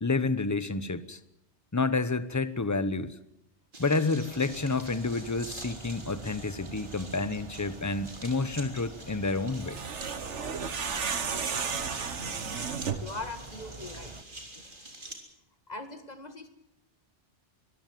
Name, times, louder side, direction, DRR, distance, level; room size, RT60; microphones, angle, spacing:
voice 1, 0.0-1.2 1.7-3.1 3.8-9.8, left 3 dB, 15° left, 14 dB, 0.9 m, -29 dB
sound 1, 3.7-15.1, right 2 dB, 45° right, 3.7 m, -47 dB
sound 2, 4.3-14.2, right 3 dB, 30° right, 1.0 m, -46 dB
sound 3, 9.5-13.2, right 6 dB, 80° right, 1.7 m, -33 dB
voice 2, 13.0-14.1 14.6-14.7 15.7-16.5, left 2 dB, 35° left, 8 dB, 2.2 m, -40 dB
23.0 x 15.0 x 9.3 m, 0.81 s
omnidirectional pair, 1.2 m